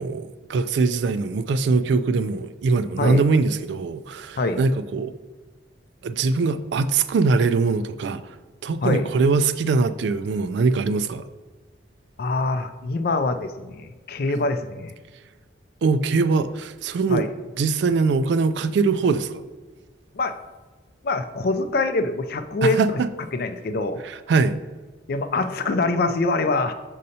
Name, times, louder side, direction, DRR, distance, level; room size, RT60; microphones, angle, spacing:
voice 1, 0.0-5.1 6.0-8.3 8.6-11.3 15.8-17.3 17.6-19.4 22.6-23.1 24.0-24.6, right 4 dB, 65° right, 0.3 m, -22 dB
voice 2, 4.4-4.7 8.8-9.1 12.2-14.9 17.1-17.3 20.1-20.3 21.0-22.8 23.3-24.0 25.1-26.7, left 2 dB, 50° left, 0.4 m, -24 dB
6.3 x 5.3 x 2.8 m
head